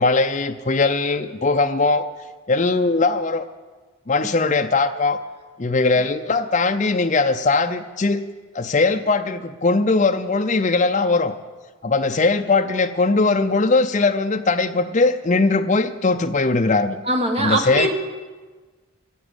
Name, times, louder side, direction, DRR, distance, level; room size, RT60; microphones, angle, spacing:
voice 1, 0.0-2.1 2.5-3.5 4.1-5.2 5.6-8.2 8.5-11.3 11.8-17.0 17.4-18.0, left 3 dB, 35° left, 6 dB, 0.5 m, -20 dB
voice 2, 17.0-18.0, right 1 dB, 30° right, 2 dB, 1.5 m, -21 dB
15.5 x 8.6 x 8.1 m, 1.3 s
head